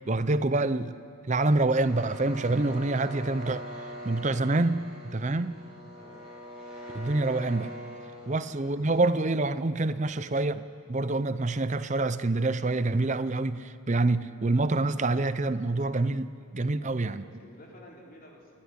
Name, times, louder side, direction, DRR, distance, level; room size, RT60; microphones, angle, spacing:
voice 1, 0.1-1.0 1.3-3.6 4.0-5.6 6.9-7.7 8.3-10.6 10.9-17.3, right 2 dB, 35° right, 13 dB, 0.6 m, -26 dB
sound 1, 1.8-9.6, equal, 5° right, 7.3 m, -43 dB
voice 2, 16.8-18.6, left 1 dB, 40° left, -2 dB, 4.0 m, -52 dB
28.0 x 12.0 x 9.7 m, 2.4 s
head